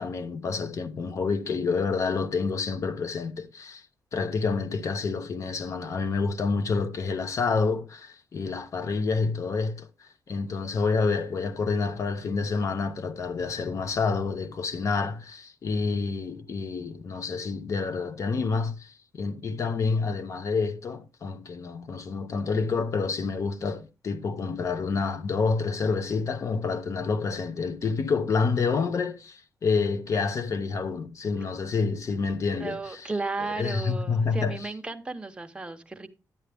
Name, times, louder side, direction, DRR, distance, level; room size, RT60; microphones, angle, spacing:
voice 1, 0.0-3.8 4.1-33.1 33.4-34.7, left 4 dB, 50° left, 0.9 m, -28 dB
voice 2, 32.6-36.1, right 3 dB, 15° right, 0.9 m, -34 dB
10.0 x 8.8 x 3.4 m
wide cardioid pair, 130°, 7 cm